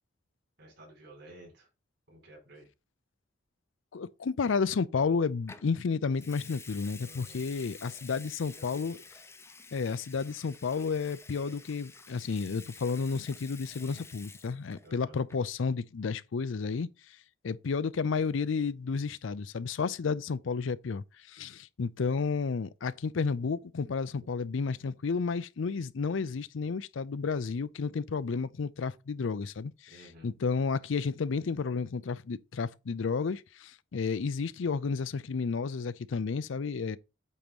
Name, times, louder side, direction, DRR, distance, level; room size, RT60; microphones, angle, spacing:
voice 1, 0.6-1.7 2.1-2.7 7.0-7.5 7.8-9.1 14.8-15.2 29.9-30.3, right 1 dB, 60° right, 3.7 m, -53 dB
voice 2, 3.9-9.0 9.7-16.9 17.4-37.0, left 5 dB, 80° left, 0.5 m, -32 dB
Water tap faucet / Sink (filling or washing) / Liquid, 5.5-5.7 6.1-14.9 15.2-15.5, left 4 dB, 15° left, 0.5 m, -50 dB
8.4 x 3.0 x 5.3 m
head